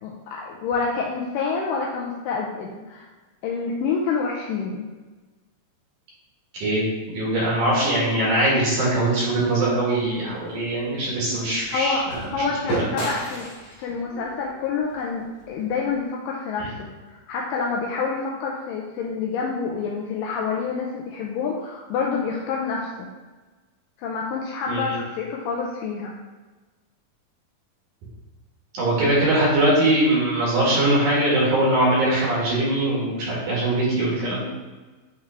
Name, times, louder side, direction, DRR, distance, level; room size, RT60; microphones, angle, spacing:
voice 1, 0.0-3.1 3.4-4.9 11.7-13.5 13.8-23.1 24.0-26.1, left 5 dB, 80° left, -2 dB, 2.2 m, -28 dB
voice 2, 6.5-12.1 12.9-13.0 16.6-16.7 24.7-24.9 28.7-34.5, right 1 dB, 65° right, -6 dB, 3.0 m, -21 dB
sound 1, 9.9-16.0, right 1 dB, 50° left, 2.9 m, -34 dB
8.4 x 3.6 x 3.3 m, 1.3 s
omnidirectional pair, 4.1 m